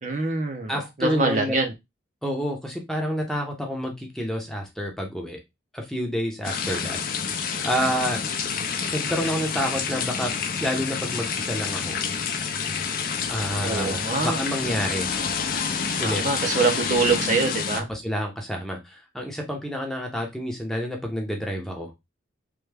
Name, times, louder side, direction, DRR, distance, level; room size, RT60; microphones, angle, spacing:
voice 1, 0.0-1.7 13.6-14.4 16.0-17.9, right 3 dB, 40° right, 4 dB, 0.5 m, -24 dB
voice 2, 0.7-1.6 2.2-5.4 5.7-7.0 7.6-8.2 8.9-10.3 10.6-12.0 13.3-15.1 16.0-16.3 17.8-21.9, equal, ahead, 1 dB, 0.6 m, -29 dB
sound 1, 6.4-17.8, left 6 dB, 45° left, 0.4 m, -28 dB
3.3 x 2.2 x 3.3 m, 0.21 s
head